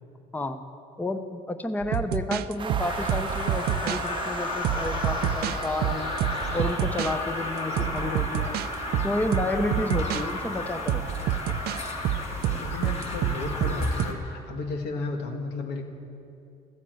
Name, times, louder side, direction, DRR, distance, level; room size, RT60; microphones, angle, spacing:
voice 1, 1.0-6.2 6.5-8.6 9.0-11.0, left 2 dB, 10° left, 8 dB, 0.7 m, -31 dB
sound 1, 1.8-4.1 4.6-7.1 7.8-8.7 8.9-10.2 10.9-14.1, right 11 dB, 70° right, 0.5 m, -28 dB
sound 2, 2.6-14.2, right 5 dB, 30° right, 0.8 m, -39 dB
sound 3, 2.8-14.1, left 3 dB, 40° left, 2.3 m, -33 dB
voice 2, 7.8-8.2 9.7-10.1 12.6-15.8, left 3 dB, 90° left, 4 dB, 1.6 m, -34 dB
14.5 x 9.8 x 7.8 m, 2.6 s
cardioid pair, 110°, 17 cm